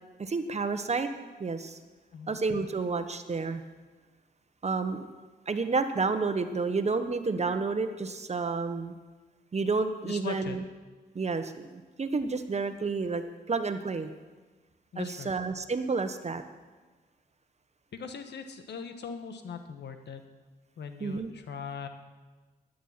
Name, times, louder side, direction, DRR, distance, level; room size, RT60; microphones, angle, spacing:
voice 1, 0.2-1.1 1.4-1.8 2.3-3.6 4.6-5.1 5.5-8.9 9.5-10.6 11.1-14.1 15.0-16.4 21.0-21.3, right 4 dB, 40° right, 9 dB, 1.2 m, -30 dB
voice 2, 10.0-10.6 14.9-15.3 17.9-20.2 20.8-21.9, left 6 dB, 75° left, 7 dB, 1.4 m, -40 dB
12.0 x 10.0 x 5.8 m, 1.3 s
cardioid pair, 60°, 18 cm